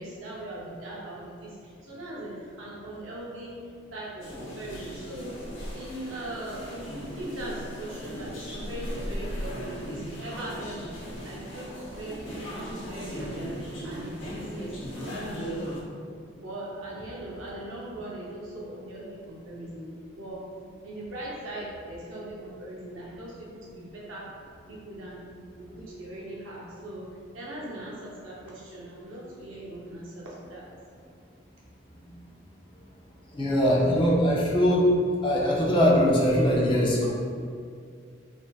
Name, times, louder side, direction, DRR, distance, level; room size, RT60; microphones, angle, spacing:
voice 1, 0.0-3.6 3.9-5.3 5.7-15.6 16.4-19.9 20.1-20.5 20.8-24.4 24.7-30.7, right 1 dB, 80° right, -5 dB, 0.6 m, -40 dB
sound 1, 4.2-15.8, equal, 75° left, 0.8 m, -37 dB
voice 2, 33.3-34.9 35.2-37.1, equal, 25° left, -5 dB, 0.5 m, -21 dB
3.4 x 2.6 x 2.3 m, 2.2 s
head